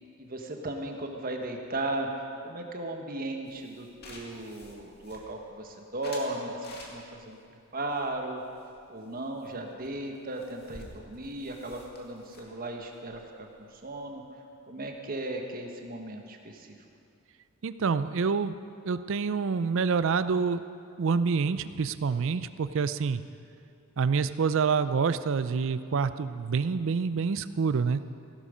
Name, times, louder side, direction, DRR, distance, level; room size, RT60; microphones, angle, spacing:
voice 1, 0.2-7.4 7.7-8.4 8.9-14.2 14.7-16.8, right 2 dB, 45° right, 3 dB, 1.4 m, -36 dB
sound 1, 3.5-5.6 6.0-7.3 7.9-9.1 9.4-9.6 9.8-9.9 10.1-14.0, left 2 dB, 50° left, 2.1 m, -49 dB
voice 2, 17.6-18.5 18.8-20.6 21.0-23.2 24.0-28.0, right 5 dB, 65° right, 13 dB, 0.5 m, -27 dB
16.0 x 12.5 x 5.1 m, 2.4 s
head